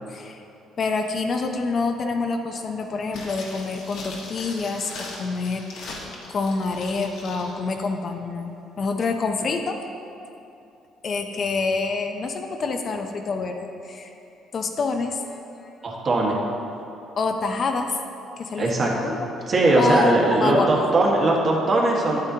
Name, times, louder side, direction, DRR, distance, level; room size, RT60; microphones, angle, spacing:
voice 1, 0.1-0.4 0.8-5.9 6.3-9.8 11.0-14.1 14.5-15.4 17.2-17.9 18.4-19.2 19.8-20.9, left 4 dB, 45° left, 4 dB, 0.6 m, -27 dB
sound 1, 3.1-7.5 7.8-7.9, left 2 dB, 75° left, 1.4 m, -39 dB
voice 2, 15.8-16.4 18.6-19.2 19.5-22.2, right 2 dB, 40° right, -3 dB, 1.5 m, -20 dB
8.7 x 8.7 x 2.8 m, 2.7 s
cardioid pair, 110°, 0 cm